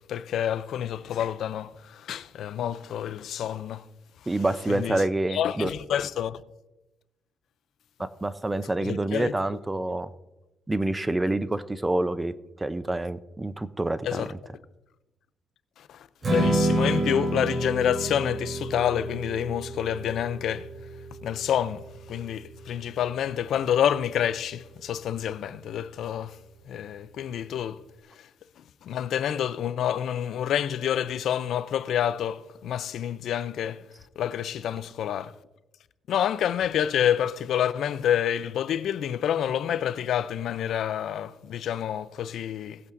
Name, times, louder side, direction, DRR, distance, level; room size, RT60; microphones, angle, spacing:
voice 1, 0.1-3.9 4.7-5.0 5.3-6.4 8.8-9.3 14.0-14.3 15.8-20.7 21.2-26.4 26.7-27.8 28.2-28.3 28.8-33.8 34.2-35.3 36.1-42.8, left 10 dB, 70° left, 0.5 m, -28 dB
voice 2, 4.3-5.7 8.0-10.1 10.7-14.2, right 2 dB, 15° right, 0.6 m, -27 dB
Strum, 16.2-22.5, right 1 dB, 40° right, 3.4 m, -29 dB
18.5 x 8.4 x 2.6 m
cardioid pair, 90°, 0 cm